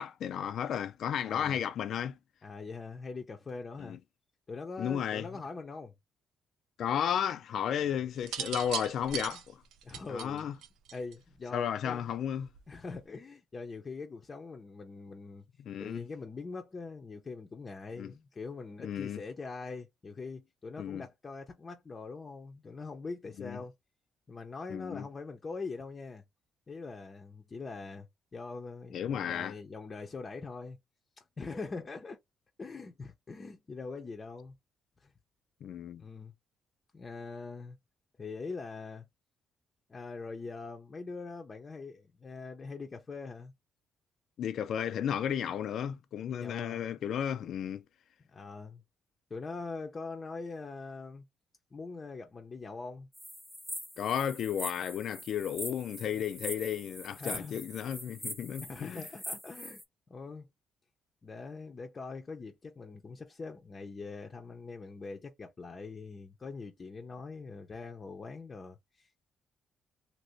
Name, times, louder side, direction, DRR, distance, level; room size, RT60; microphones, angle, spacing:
voice 1, 0.0-2.2 3.8-4.0 4.8-5.3 6.8-9.6 10.1-10.6 11.5-12.5 15.6-16.1 18.0-18.1 18.8-19.2 20.8-21.1 23.4-23.6 24.7-25.1 28.9-29.5 35.6-36.0 44.4-47.8 54.0-59.1, left 9 dB, 70° left, 0.5 m, -33 dB
voice 2, 1.2-1.6 2.4-4.0 4.5-5.9 7.9-8.0 9.3-9.4 9.8-10.5 10.9-12.1 12.7-15.4 15.8-23.7 24.3-26.2 26.7-28.1 28.3-30.8 31.4-32.2 32.6-34.5 35.0-35.1 36.0-36.3 36.9-37.8 38.2-39.1 39.9-43.5 46.3-46.9 48.3-48.8 49.3-51.2 51.7-53.1 56.0-56.2 57.2-57.6 58.6-59.8 60.1-60.5 61.2-69.2, left 4 dB, 35° left, 0.7 m, -43 dB
sound 1, 8.2-11.3 12.4-12.8, right 9 dB, 90° right, 0.5 m, -39 dB
sound 2, 53.1-59.8, equal, 5° right, 0.9 m, -43 dB
2.9 x 2.7 x 3.1 m
cardioid pair, 90°, 0 cm